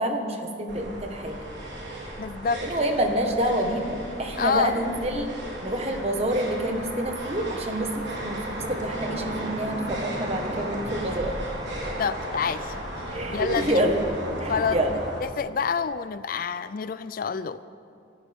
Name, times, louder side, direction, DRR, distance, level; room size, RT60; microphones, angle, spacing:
voice 1, 0.0-1.4 2.6-5.3 5.6-11.4 13.1-14.0 14.4-14.9, right 1 dB, 35° right, 3 dB, 1.5 m, -27 dB
sound 1, 0.7-15.2, right 1 dB, 70° right, 3.8 m, -34 dB
voice 2, 2.2-2.6 4.4-4.8 12.0-13.8 14.5-17.6, left 6 dB, 50° left, 14 dB, 0.4 m, -28 dB
25.0 x 14.5 x 3.6 m, 2.4 s
head